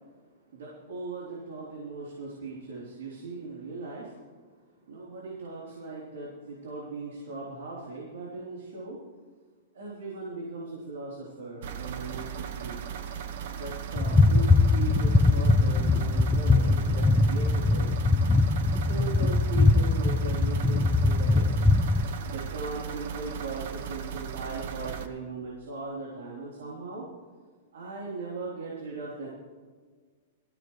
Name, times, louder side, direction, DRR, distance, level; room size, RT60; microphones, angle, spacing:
voice 1, 0.5-4.2 4.9-9.0 9.7-12.8 13.6-17.9 18.7-21.4 22.2-27.0 27.7-29.3, right 3 dB, 85° right, -5 dB, 3.7 m, -38 dB
sound 1, 11.6-25.1, right 8 dB, 50° right, 1.1 m, -37 dB
sound 2, 14.0-22.0, left 3 dB, 5° left, 0.5 m, -22 dB
19.5 x 15.0 x 3.3 m, 1.5 s
supercardioid pair, 175°, 0 cm